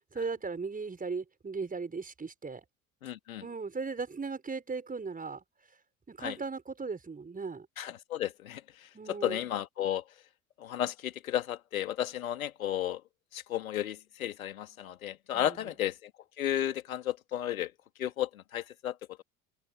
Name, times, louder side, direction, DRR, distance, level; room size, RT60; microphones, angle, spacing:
voice 1, 0.1-2.6 3.4-5.4 6.1-7.7 8.9-9.4 15.3-15.6, right 4 dB, 20° right, 6.1 m, -37 dB
voice 2, 3.0-3.4 6.2-6.4 7.8-8.6 9.1-10.0 10.6-13.0 13.3-16.1 16.4-17.7 18.0-19.2, left 11 dB, 70° left, 2.8 m, -33 dB
figure-of-eight pair, 65°, 43 cm